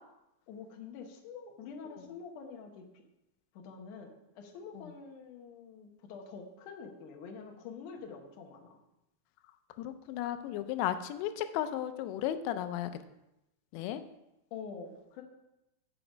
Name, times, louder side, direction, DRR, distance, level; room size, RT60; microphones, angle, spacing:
voice 1, 0.5-3.0 3.5-8.8 14.5-15.2, left 5 dB, 70° left, 2 dB, 1.9 m, -46 dB
voice 2, 9.8-12.9 13.7-14.0, left 11 dB, 90° left, 10 dB, 2.8 m, -34 dB
7.9 x 5.9 x 5.1 m, 0.90 s
omnidirectional pair, 4.9 m